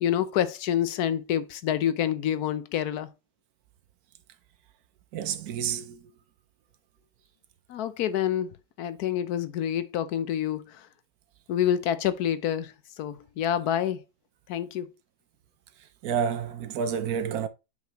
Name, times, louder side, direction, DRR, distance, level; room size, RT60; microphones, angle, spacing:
voice 1, 0.0-3.1 7.7-8.5 8.8-10.9 11.5-14.0 14.5-14.9, left 10 dB, 75° left, 1.2 m, -27 dB
voice 2, 5.1-6.1 16.0-17.5, right 7 dB, 70° right, 1.2 m, -29 dB
7.4 x 5.6 x 2.9 m
omnidirectional pair, 1.7 m